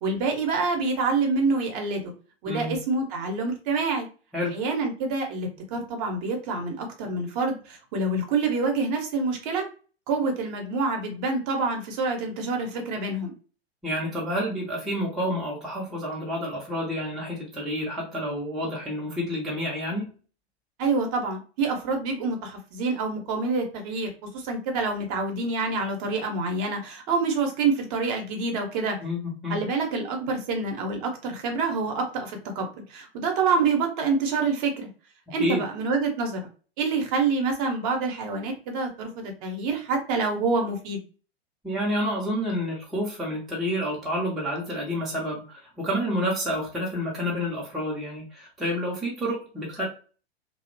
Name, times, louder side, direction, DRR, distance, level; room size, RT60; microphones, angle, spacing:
voice 1, 0.0-2.1 2.4-4.1 4.5-9.6 10.1-13.3 20.8-29.0 29.5-34.9 35.3-36.4 36.8-41.0, right 4 dB, 35° right, 3 dB, 0.7 m, -27 dB
voice 2, 2.4-2.8 4.3-4.5 13.8-20.1 29.0-29.6 35.4-35.6 41.6-49.8, equal, ahead, -5 dB, 0.5 m, -29 dB
2.7 x 2.0 x 2.5 m, 0.37 s
figure-of-eight pair, 95°, 32 cm